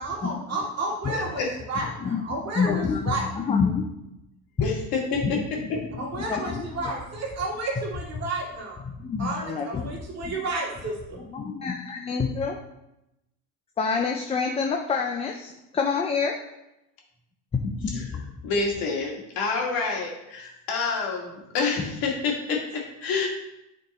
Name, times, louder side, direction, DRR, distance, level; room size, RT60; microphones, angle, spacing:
voice 1, 0.0-3.3 6.0-8.8 9.2-11.2, right 2 dB, 40° right, -3 dB, 2.2 m, -31 dB
voice 2, 1.1-1.5 4.6-5.6 17.6-18.0 18.4-23.3, left 4 dB, 60° left, 0 dB, 2.0 m, -28 dB
voice 3, 1.8-3.8 5.2-6.9 8.8-9.9 10.2-10.4 11.1-12.6 13.8-16.4 17.8-18.3, left 5 dB, 15° left, 2 dB, 0.4 m, -28 dB
8.2 x 4.4 x 4.1 m, 0.89 s
cardioid pair, 125°, 41 cm